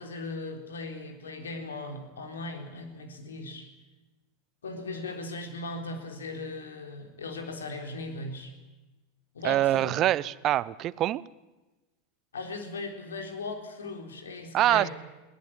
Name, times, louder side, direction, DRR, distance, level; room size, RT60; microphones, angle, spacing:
voice 1, 0.0-3.7 4.6-8.5 9.3-10.0 12.3-14.9, left 2 dB, 75° left, 5 dB, 3.8 m, -38 dB
voice 2, 9.4-11.2 14.5-14.9, right 13 dB, 40° right, 21 dB, 0.7 m, -24 dB
21.0 x 19.0 x 9.9 m, 1.1 s
figure-of-eight pair, 85°, 0 cm